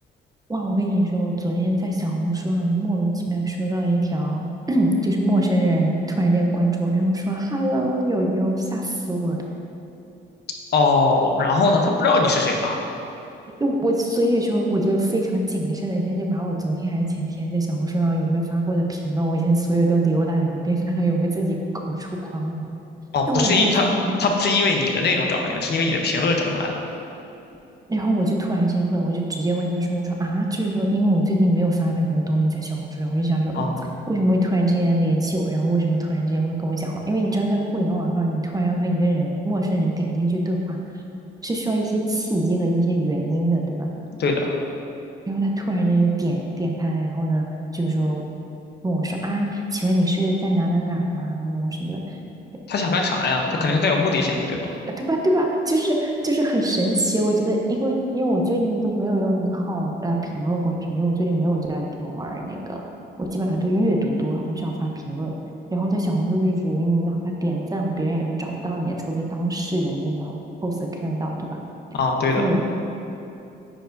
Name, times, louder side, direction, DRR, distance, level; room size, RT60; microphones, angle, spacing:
voice 1, 0.5-9.4 13.6-21.6 21.9-22.7 23.3-24.2 27.9-33.7 34.1-40.8 41.4-43.9 45.3-47.5 47.7-48.2 48.8-52.2 54.9-62.8 63.2-65.3 65.7-70.4 70.6-71.6 72.4-72.6, right 1 dB, 20° right, 0 dB, 0.8 m, -23 dB
voice 2, 10.7-12.8 23.1-23.8 24.2-26.8 33.5-33.8 44.2-44.6 52.7-54.7 71.9-72.4, left 3 dB, 55° left, 1 dB, 0.8 m, -21 dB
10.0 x 4.6 x 2.6 m, 2.8 s
cardioid pair, 90°, 20 cm